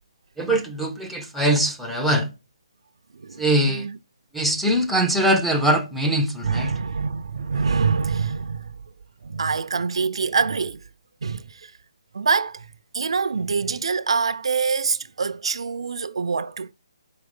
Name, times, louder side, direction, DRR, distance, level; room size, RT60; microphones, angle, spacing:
voice 1, 0.4-2.3 3.4-3.9 4.3-6.7, right 1 dB, ahead, 0.3 m, -22 dB
voice 2, 3.1-4.0 6.4-8.8 9.2-10.8 11.2-11.7 12.1-16.7, right 5 dB, 75° right, 0.4 m, -25 dB
4.7 x 3.9 x 5.2 m
hypercardioid pair, 180°, 3 cm